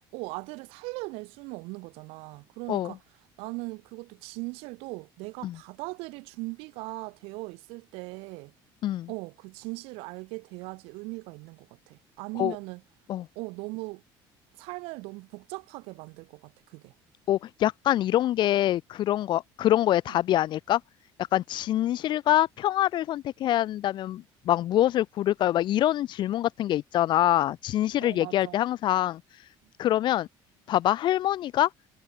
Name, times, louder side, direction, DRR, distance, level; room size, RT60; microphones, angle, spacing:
voice 1, 0.1-3.0 3.4-8.5 9.1-12.8 13.4-14.0 14.6-16.9 20.1-20.2 28.0-28.6, right 26 dB, 90° right, 1.9 m, -39 dB
voice 2, 17.3-20.8 21.3-29.5 29.8-30.3 30.7-31.7, left 13 dB, 50° left, 1.7 m, -25 dB
cardioid pair, 140°, 10 cm